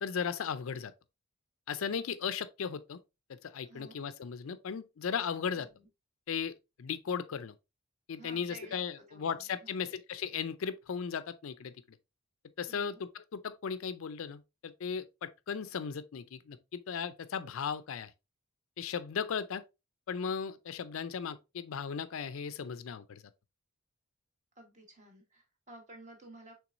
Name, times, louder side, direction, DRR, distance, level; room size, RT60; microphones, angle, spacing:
voice 1, 0.0-0.9 1.7-3.0 3.3-5.7 6.3-7.5 8.1-12.0 12.6-18.1 18.8-19.6 20.1-23.2, left 6 dB, 70° left, 0.4 m, -36 dB
voice 2, 3.6-4.0 5.5-5.9 8.2-9.9 12.7-13.0 24.5-26.6, right 2 dB, 35° right, 1.3 m, -53 dB
6.0 x 3.5 x 2.5 m
head